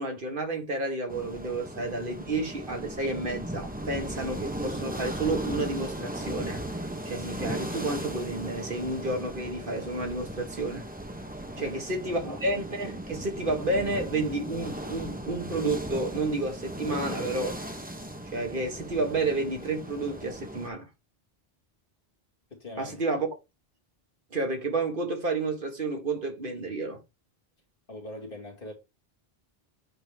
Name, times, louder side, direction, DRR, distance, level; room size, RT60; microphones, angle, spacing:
voice 1, 0.0-6.6 7.0-10.8 11.6-17.6 18.3-20.9 22.8-23.3 24.3-27.0, right 2 dB, 55° right, 1.7 m, -31 dB
sound 1, 1.1-20.7, right 1 dB, 10° right, 1.0 m, -37 dB
voice 2, 11.5-12.1 22.5-23.0 27.9-28.7, left 1 dB, 60° left, 2.4 m, -42 dB
8.7 x 3.9 x 3.6 m
omnidirectional pair, 1.0 m